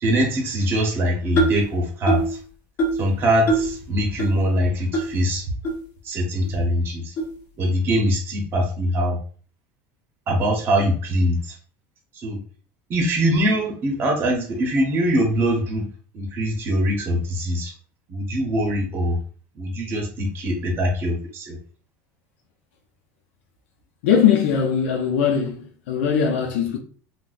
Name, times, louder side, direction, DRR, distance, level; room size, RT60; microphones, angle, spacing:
voice 1, 0.0-2.4 3.0-5.4 6.0-7.1 7.6-9.2 10.3-11.5 12.2-12.4 12.9-15.8 16.1-17.7 18.1-19.1 19.6-21.6, equal, 30° right, 0.8 m, -22 dB
sound 1, 1.4-1.7 2.1-2.4 2.8-3.1 3.5-3.7 4.2-4.3 4.9-5.1 5.6-5.7 6.4-6.5 7.2-7.3, right 2 dB, 40° left, 1.0 m, -22 dB
voice 2, 24.0-26.8, left 7 dB, 85° left, 0.5 m, -20 dB
3.9 x 2.1 x 2.5 m
cardioid pair, 155°, 7 cm